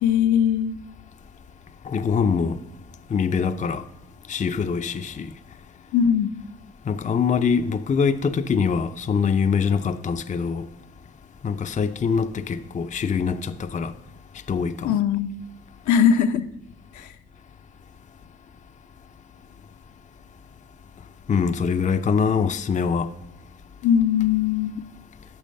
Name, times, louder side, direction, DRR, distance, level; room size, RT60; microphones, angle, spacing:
voice 1, 0.0-0.8 5.9-6.4 14.8-15.3 15.9-16.5 16.9-17.1 23.8-24.8, left 8 dB, 75° left, 0.7 m, -20 dB
voice 2, 1.8-2.6 3.1-3.8 4.3-5.3 6.9-10.7 11.4-13.9 14.5-15.0 21.3-23.1, left 6 dB, 25° left, 0.5 m, -23 dB
8.9 x 6.1 x 6.5 m
cardioid pair, 90°, 30 cm